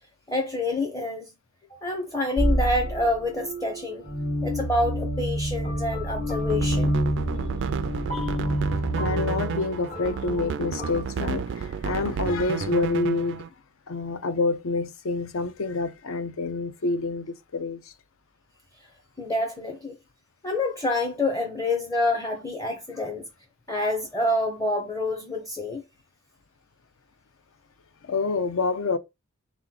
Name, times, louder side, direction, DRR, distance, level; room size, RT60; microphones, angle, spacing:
voice 1, 0.3-1.3 1.8-4.0 4.4-7.0 19.2-20.0 20.4-23.3 23.7-25.8, left 2 dB, 15° left, 0.6 m, -27 dB
sound 1, 2.4-11.0, equal, 35° left, 1.3 m, -28 dB
sound 2, 6.4-13.5, right 6 dB, 55° right, 0.3 m, -32 dB
voice 2, 8.9-13.5 13.9-17.9 28.0-29.0, left 3 dB, 65° left, 0.5 m, -27 dB
3.8 x 3.0 x 3.8 m
head